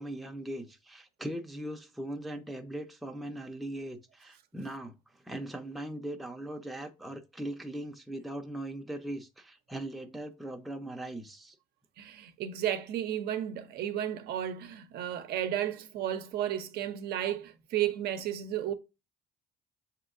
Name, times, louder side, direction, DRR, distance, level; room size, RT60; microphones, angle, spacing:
voice 1, 0.0-11.6, right 1 dB, ahead, 0.5 m, -40 dB
voice 2, 12.0-18.7, right 11 dB, 70° right, 0.6 m, -33 dB
6.9 x 2.9 x 2.4 m
cardioid pair, 110°, 17 cm